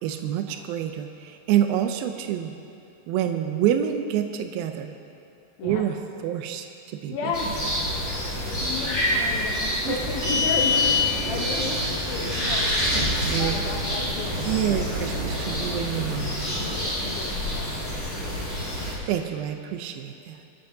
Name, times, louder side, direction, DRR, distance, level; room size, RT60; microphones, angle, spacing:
voice 1, 0.0-2.5 3.1-5.0 5.6-6.0 6.2-7.3 9.8-10.0 13.2-13.5 14.4-16.4 19.1-20.4, right 10 dB, 90° right, 6 dB, 2.1 m, -27 dB
voice 2, 7.1-7.6 8.6-12.7 13.3-14.9 15.5-15.8 16.5-18.5, left 4 dB, 70° left, 0 dB, 2.4 m, -34 dB
sound 1, 7.3-18.9, equal, 25° left, 3.3 m, -28 dB
sound 2, 10.0-16.9, left 3 dB, 65° right, 4.4 m, -29 dB
28.5 x 10.5 x 2.7 m, 2.7 s
omnidirectional pair, 5.0 m